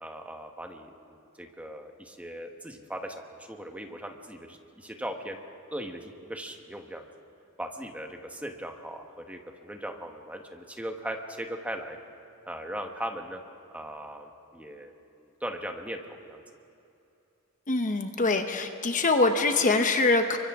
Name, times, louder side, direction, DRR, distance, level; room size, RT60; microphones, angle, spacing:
voice 1, 0.0-5.4 5.7-7.1 7.6-12.0 12.4-13.4 13.7-16.4, right 1 dB, 5° right, 3 dB, 1.3 m, -39 dB
voice 2, 17.7-20.4, left 3 dB, 35° left, 6 dB, 1.0 m, -24 dB
29.5 x 24.0 x 3.7 m, 2.7 s
head